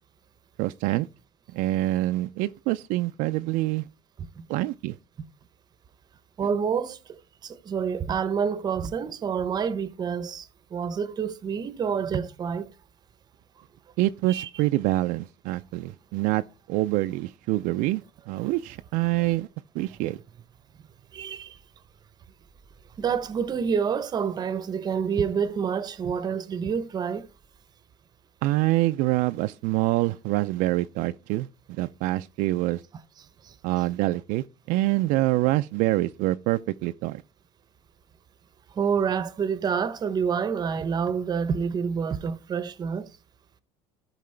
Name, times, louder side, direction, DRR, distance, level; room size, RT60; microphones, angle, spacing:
voice 1, 0.6-1.1 1.5-3.9 4.5-4.9 6.4-6.5 14.0-16.4 16.7-18.0 18.3-19.5 19.8-20.2 28.4-31.5 31.8-32.8 33.6-37.2, right 17 dB, 65° right, 0.4 m, -25 dB
voice 2, 6.4-7.0 7.4-10.5 10.7-12.7 14.3-14.5 21.1-21.5 23.0-27.3 38.8-43.1, right 6 dB, 30° right, 0.7 m, -27 dB
13.0 x 4.8 x 3.3 m
cardioid pair, 130°, 15 cm